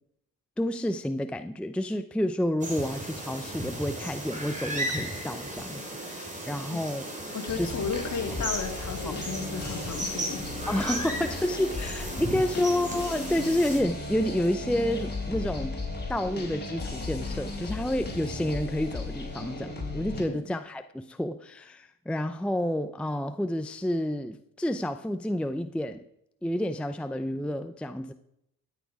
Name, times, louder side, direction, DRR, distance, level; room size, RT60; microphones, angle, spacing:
voice 1, 0.6-7.1 7.6-7.7 9.1-9.2 10.7-15.8 16.1-26.0 26.4-28.1, left 1 dB, 5° left, 9 dB, 0.5 m, -29 dB
sound 1, 2.6-13.8, right 1 dB, 20° right, 3.4 m, -35 dB
voice 2, 7.3-10.4 11.8-11.9 20.3-20.5, left 5 dB, 50° left, 4 dB, 2.2 m, -34 dB
sound 2, 7.5-20.2, left 2 dB, 25° left, 3.7 m, -36 dB
13.0 x 8.7 x 4.8 m, 0.78 s
cardioid pair, 80°, 37 cm